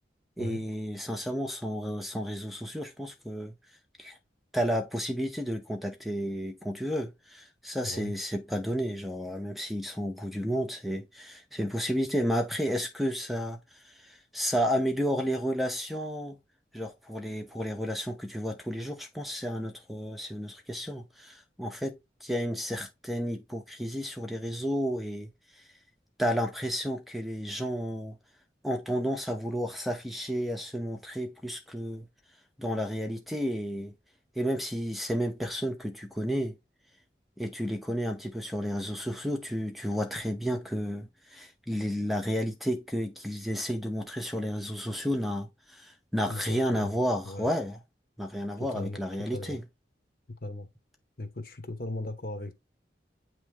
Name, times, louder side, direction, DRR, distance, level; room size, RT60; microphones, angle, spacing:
voice 1, 0.4-3.5 4.0-4.2 4.5-16.4 16.7-22.0 22.2-25.6 26.2-28.2 28.6-32.1 32.6-33.9 34.4-36.5 37.4-47.8 48.2-49.6, equal, ahead, 0.7 m, -32 dB
voice 2, 46.3-47.0 47.2-47.5 48.6-49.0 49.3-49.6 50.4-50.7 51.2-52.5, left 2 dB, 55° left, 1.2 m, -37 dB
8.7 x 3.1 x 3.5 m
head